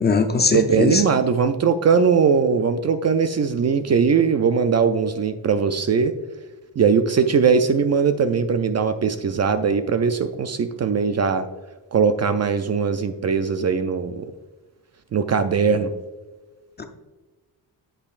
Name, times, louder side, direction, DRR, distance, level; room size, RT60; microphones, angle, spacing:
voice 1, 0.0-1.0 16.8-16.9, left 4 dB, 25° left, 6 dB, 0.5 m, -20 dB
voice 2, 0.5-6.2 6.8-11.5 11.9-14.2 15.1-15.9, right 6 dB, 40° right, 10 dB, 0.4 m, -20 dB
8.6 x 8.3 x 2.5 m, 1.2 s
wide cardioid pair, 175°, 41 cm